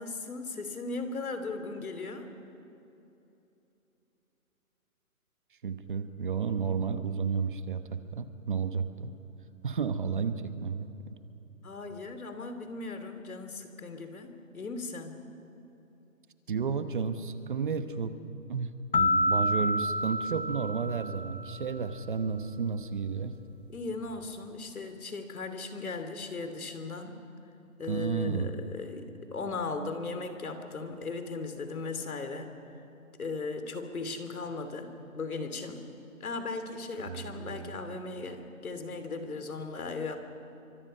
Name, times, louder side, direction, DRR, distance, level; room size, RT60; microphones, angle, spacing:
voice 1, 0.0-2.3 11.6-15.2 23.7-27.2 27.8-32.5 33.2-35.8 36.2-40.2, left 3 dB, 80° left, 8 dB, 3.0 m, -37 dB
voice 2, 5.6-9.1 9.6-11.1 16.5-18.2 18.5-23.3 27.9-28.5 37.0-37.8, right 6 dB, 35° right, 10 dB, 1.0 m, -32 dB
sound 1, 18.9-21.7, left 1 dB, 40° left, 0.7 m, -29 dB
26.0 x 24.5 x 5.5 m, 3.0 s
hypercardioid pair, 165°, 42 cm